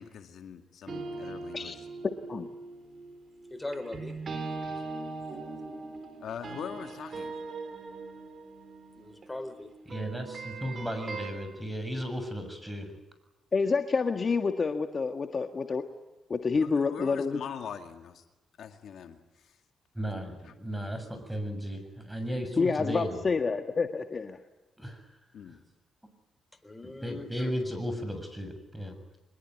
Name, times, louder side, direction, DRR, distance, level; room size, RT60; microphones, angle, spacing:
voice 1, 0.0-1.8 6.2-7.3 16.6-18.2 18.6-19.2 19.4-19.6 25.3-25.6, left 8 dB, 70° left, 6 dB, 2.2 m, -42 dB
sound 1, 0.9-11.3, right 3 dB, 50° right, 4.8 m, -40 dB
voice 2, 3.5-4.2 9.0-9.7 26.6-27.5, left 2 dB, 15° left, 11 dB, 3.9 m, -40 dB
voice 3, 9.9-12.9 19.9-23.2 24.8-25.1 25.5-25.6 26.8-29.0, equal, 5° right, 8 dB, 7.1 m, -35 dB
voice 4, 13.5-15.9 16.3-17.4 22.6-24.4, left 4 dB, 40° left, 6 dB, 1.7 m, -28 dB
25.0 x 21.5 x 9.4 m, 1.0 s
cardioid pair, 75°, 0 cm